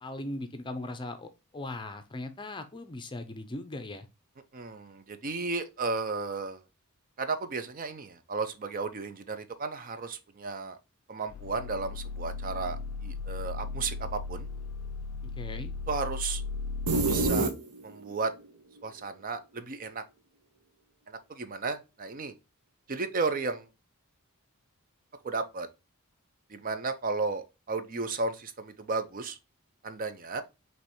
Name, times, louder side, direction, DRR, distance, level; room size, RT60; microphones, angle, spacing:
voice 1, 0.0-4.1 15.2-15.7, left 2 dB, 20° left, 0.5 m, -39 dB
voice 2, 4.5-6.6 7.2-10.8 11.1-14.5 15.9-16.4 17.0-17.5 17.8-18.3 18.8-20.0 21.1-22.3 22.9-23.7 25.2-25.7 26.5-29.4 29.8-30.4, right 4 dB, 40° right, 0.5 m, -34 dB
sound 1, 11.3-17.3, left 4 dB, 75° left, 0.4 m, -36 dB
sound 2, 16.9-18.1, right 3 dB, 90° right, 1.0 m, -26 dB
5.2 x 3.1 x 3.0 m
head